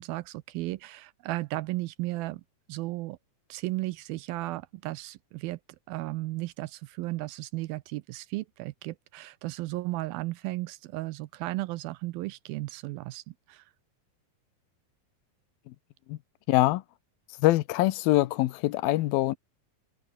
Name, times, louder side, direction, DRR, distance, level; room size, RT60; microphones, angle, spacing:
voice 1, 0.0-2.4 2.7-3.2 3.5-5.6 5.9-13.7, right 19 dB, 85° right, 2.4 m, -35 dB
voice 2, 16.5-16.8 17.4-19.4, left 17 dB, 80° left, 2.6 m, -24 dB
omnidirectional pair, 4.4 m